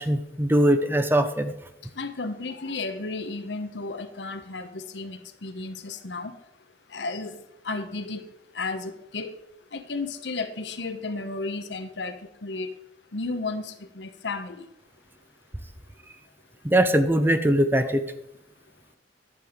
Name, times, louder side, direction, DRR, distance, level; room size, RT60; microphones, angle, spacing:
voice 1, 0.0-1.5 16.6-18.0, right 1 dB, 10° right, 10 dB, 0.6 m, -21 dB
voice 2, 2.0-6.3 6.9-7.4 7.6-8.3 8.5-9.3 9.7-12.2 12.4-12.7 13.1-14.7, left 3 dB, 70° left, 9 dB, 1.0 m, -33 dB
11.0 x 7.8 x 5.1 m, 0.83 s
head